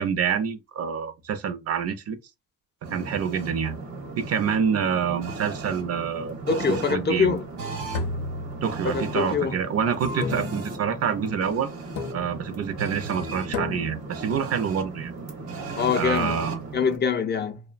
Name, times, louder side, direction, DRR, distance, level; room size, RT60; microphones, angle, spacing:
voice 1, 0.0-2.2 2.9-3.8 4.2-6.4 6.9-7.4 8.6-11.7 12.1-15.1 16.0-16.6, right 7 dB, 55° right, 0.5 m, -27 dB
sound 1, 2.8-17.0, right 3 dB, 80° right, 0.9 m, -36 dB
voice 2, 6.5-7.5 8.8-9.6 15.8-16.3 16.7-17.6, left 6 dB, 35° left, 0.4 m, -24 dB
sound 2, 7.9-9.1 10.2-11.0 12.0-12.6 13.5-14.2, left 4 dB, 90° left, 0.6 m, -33 dB
2.6 x 2.1 x 2.4 m
cardioid pair, 90°, 30 cm